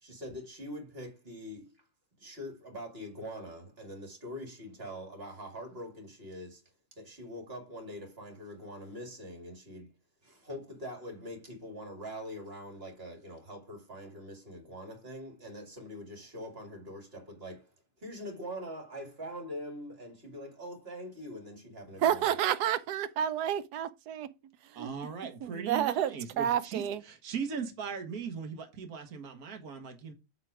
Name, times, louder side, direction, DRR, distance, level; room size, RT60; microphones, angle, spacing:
voice 1, 0.0-1.7 2.2-6.6 7.0-9.9 10.2-17.7 18.0-22.3, equal, 40° right, 2.4 m, -43 dB
voice 2, 22.0-24.3 24.7-24.9 25.4-27.0, right 10 dB, 85° right, 1.2 m, -30 dB
voice 3, 24.7-30.1, right 6 dB, 65° right, 1.7 m, -39 dB
7.6 x 3.8 x 4.7 m
omnidirectional pair, 1.7 m